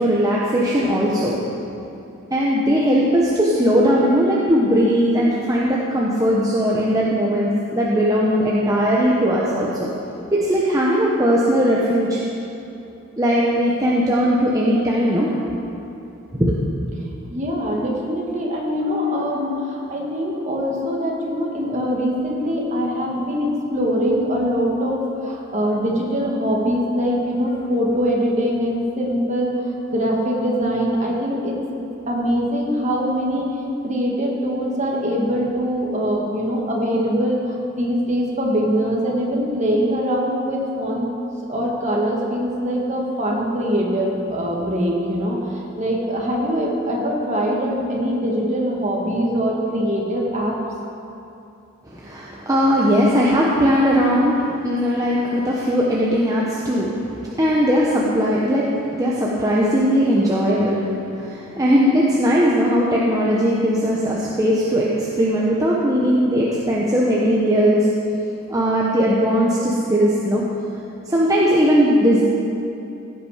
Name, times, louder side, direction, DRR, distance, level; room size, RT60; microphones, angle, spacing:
voice 1, 0.0-1.5 2.3-9.9 10.3-12.2 13.2-15.3 16.4-16.5 51.9-67.9 68.5-70.4 71.1-72.2, equal, 15° right, -5 dB, 1.0 m, -19 dB
voice 2, 17.3-31.6 32.1-33.6 33.8-41.1 41.5-50.5, equal, 35° right, -2 dB, 1.9 m, -23 dB
16.0 x 8.4 x 5.0 m, 2.8 s
head